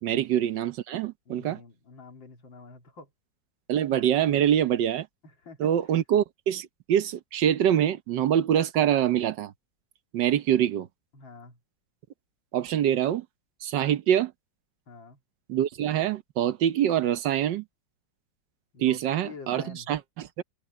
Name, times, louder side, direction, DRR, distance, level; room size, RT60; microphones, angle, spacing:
voice 1, 0.0-1.6 3.7-5.1 5.6-9.5 10.1-10.9 12.5-13.2 13.6-14.3 15.5-17.6 18.8-20.4, right 10 dB, 70° right, 1.5 m, -25 dB
voice 2, 1.3-3.1 5.4-5.7 11.1-11.6 14.9-15.2 18.7-19.9, left 4 dB, 80° left, 3.6 m, -47 dB
omnidirectional pair, 2.0 m